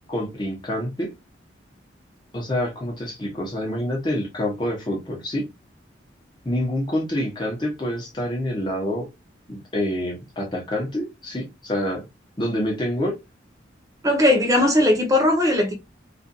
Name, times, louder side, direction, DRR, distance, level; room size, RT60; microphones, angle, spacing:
voice 1, 0.1-1.1 2.3-5.5 6.4-9.0 9.5-12.0 12.4-13.1, left 1 dB, 25° left, 0.8 m, -27 dB
voice 2, 14.0-15.7, left 1 dB, 20° right, 0.6 m, -18 dB
2.4 x 2.4 x 2.6 m
head